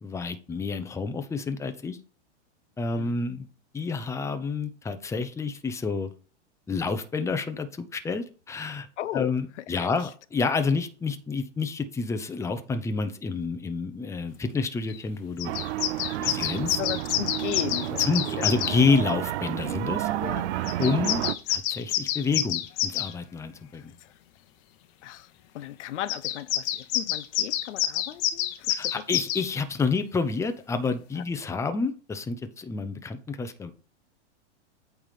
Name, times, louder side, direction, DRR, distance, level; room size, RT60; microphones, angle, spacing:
voice 1, 0.0-2.0 2.8-3.5 3.7-6.1 6.7-8.9 9.1-15.6 16.2-16.8 18.1-20.1 20.8-21.2 21.5-24.0 28.7-33.7, left 4 dB, 10° left, 0.6 m, -29 dB
voice 2, 9.0-9.3 9.7-9.9 16.8-18.5 20.1-20.5 20.8-21.0 23.7-24.1 25.0-29.0 31.2-31.3, left 13 dB, 80° left, 0.6 m, -36 dB
sound 1, 14.9-15.0 15.4-18.8 20.6-23.1 26.1-29.5, left 12 dB, 45° left, 0.9 m, -28 dB
sound 2, 15.4-21.3, right 14 dB, 70° right, 0.5 m, -30 dB
8.7 x 3.5 x 5.7 m
hypercardioid pair, 120°, 35 cm